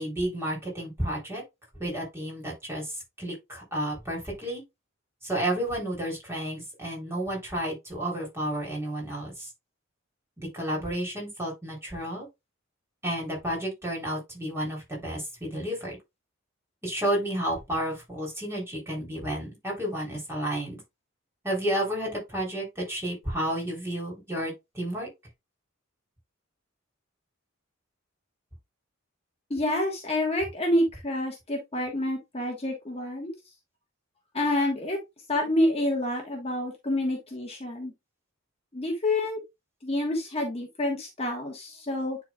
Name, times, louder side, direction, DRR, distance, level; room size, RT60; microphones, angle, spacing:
voice 1, 0.0-1.4 1.8-4.6 5.2-9.5 10.4-12.3 13.0-16.0 16.8-20.8 21.4-25.1, right 1 dB, 15° right, 3.6 m, -31 dB
voice 2, 29.5-33.3 34.3-35.0 35.3-37.9 38.7-39.4 39.8-42.2, left 1 dB, 30° left, 1.5 m, -28 dB
10.0 x 4.1 x 2.4 m
head